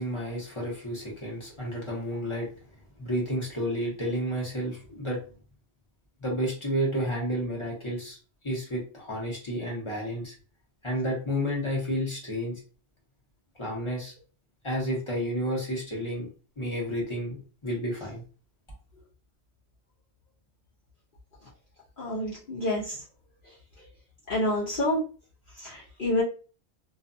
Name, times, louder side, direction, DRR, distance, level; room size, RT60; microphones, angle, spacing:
voice 1, 0.0-2.5 3.0-5.2 6.2-8.2 8.4-10.3 10.8-12.6 13.6-14.1 14.6-16.3 16.6-18.2, equal, 30° left, -3 dB, 1.0 m, -31 dB
voice 2, 22.0-22.9 24.3-25.0 25.6-26.2, left 1 dB, 55° left, -6 dB, 0.8 m, -28 dB
2.5 x 2.2 x 2.5 m, 0.37 s
omnidirectional pair, 1.2 m